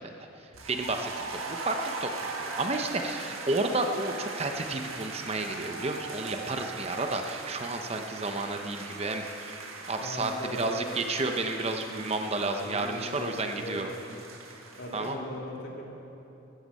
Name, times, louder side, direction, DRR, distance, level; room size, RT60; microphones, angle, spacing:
sound 1, 0.5-15.1, right 3 dB, 85° right, 1.6 m, -40 dB
voice 1, 0.7-2.1 2.4-9.6 9.9-10.3 10.6-13.9 14.9-15.2, right 2 dB, 30° right, 5 dB, 0.7 m, -31 dB
voice 2, 10.0-10.9 12.6-14.2 14.8-15.8, left 1 dB, 55° left, -1 dB, 2.3 m, -40 dB
14.5 x 13.5 x 5.5 m, 2.9 s
head